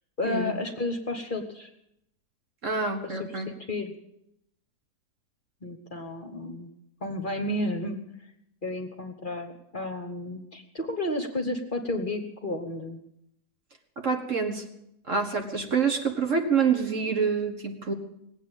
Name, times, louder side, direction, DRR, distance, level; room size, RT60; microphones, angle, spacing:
voice 1, 0.2-1.7 3.0-3.9 5.6-6.7 7.0-8.0 8.6-13.0, left 1 dB, 35° left, 5 dB, 1.3 m, -32 dB
voice 2, 2.6-3.5 14.0-14.6 15.1-17.9, right 5 dB, 50° right, 4 dB, 1.9 m, -26 dB
19.0 x 8.2 x 9.0 m, 0.79 s
omnidirectional pair, 1.7 m